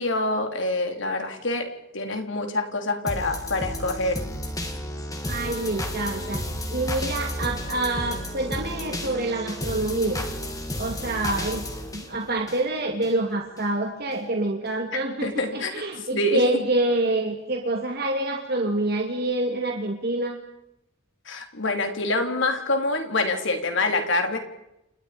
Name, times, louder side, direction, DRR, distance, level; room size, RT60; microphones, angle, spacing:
voice 1, 0.0-1.7 1.9-4.2 15.2-16.4 21.3-24.4, left 2 dB, 60° left, 5 dB, 3.7 m, -26 dB
sound 1, 3.1-13.1 13.6-13.7, left 1 dB, 15° left, 2.7 m, -32 dB
voice 2, 5.2-10.2 10.8-11.6 11.9-20.4, right 2 dB, 50° right, 2 dB, 2.6 m, -27 dB
29.5 x 29.0 x 5.3 m, 0.88 s
head